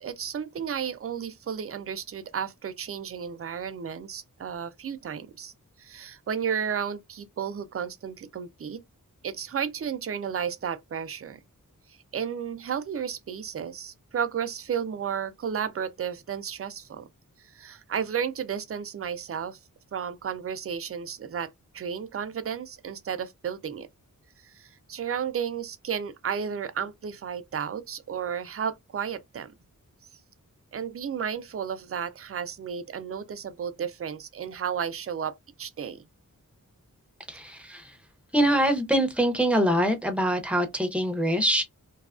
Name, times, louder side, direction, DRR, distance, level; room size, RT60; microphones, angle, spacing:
voice 1, 0.0-5.5 5.8-8.8 9.2-11.4 11.9-17.1 17.4-19.6 19.9-23.9 24.4-29.5 30.7-36.0, right 7 dB, 45° right, 0.4 m, -33 dB
voice 2, 37.3-37.9 38.3-41.6, equal, 5° right, 0.6 m, -24 dB
2.7 x 2.3 x 2.3 m
wide cardioid pair, 75°, 34 cm